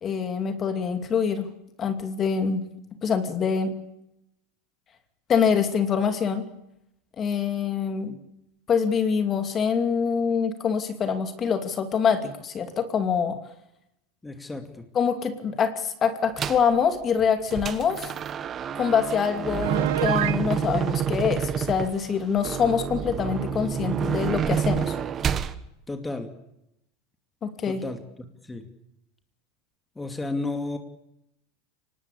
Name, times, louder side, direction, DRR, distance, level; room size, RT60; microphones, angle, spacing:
voice 1, 0.0-1.5 1.8-2.6 3.0-3.8 5.3-6.5 7.2-8.2 8.7-13.4 14.9-18.1 18.7-24.9 27.4-27.8, left 6 dB, 30° left, 8 dB, 2.6 m, -25 dB
voice 2, 14.2-14.9 25.9-26.3 27.7-28.0 28.4-28.7 30.0-30.8, left 2 dB, 10° left, 6 dB, 2.4 m, -32 dB
sound 1, 16.4-16.7 17.2-25.6, right 8 dB, 30° right, 1.4 m, -28 dB
Piano, 19.6-20.4, right 13 dB, 80° right, 1.3 m, -26 dB
24.5 x 19.5 x 8.6 m, 0.84 s
supercardioid pair, 125°, 0 cm